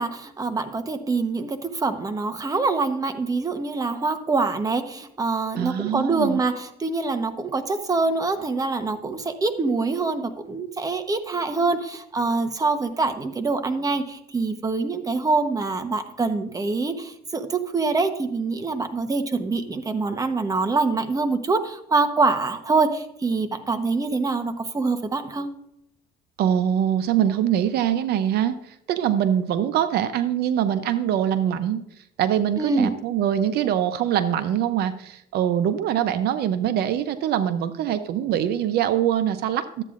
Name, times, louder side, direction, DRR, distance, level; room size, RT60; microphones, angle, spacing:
voice 1, 0.0-25.5 32.6-32.9, right 3 dB, 20° right, 8 dB, 1.0 m, -25 dB
voice 2, 5.6-6.4 26.4-31.8 32.2-39.8, right 10 dB, 75° right, 11 dB, 0.6 m, -23 dB
12.5 x 8.3 x 2.5 m, 0.77 s
cardioid pair, 110°, 17 cm